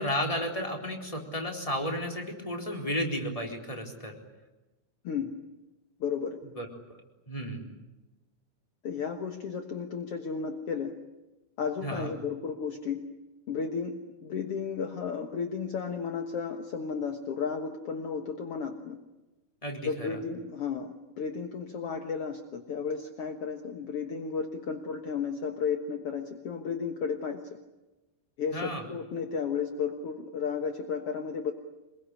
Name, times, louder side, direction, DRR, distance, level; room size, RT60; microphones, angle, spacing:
voice 1, 0.0-4.2 6.6-6.7 7.3-7.7 11.8-12.1 19.6-20.2 28.5-28.8, equal, 10° left, 2 dB, 3.8 m, -33 dB
voice 2, 6.0-6.4 8.8-10.9 11.6-13.0 13.5-19.0 19.8-27.6 28.4-31.5, left 6 dB, 60° left, 6 dB, 1.6 m, -33 dB
26.0 x 22.0 x 10.0 m, 1.0 s
omnidirectional pair, 4.6 m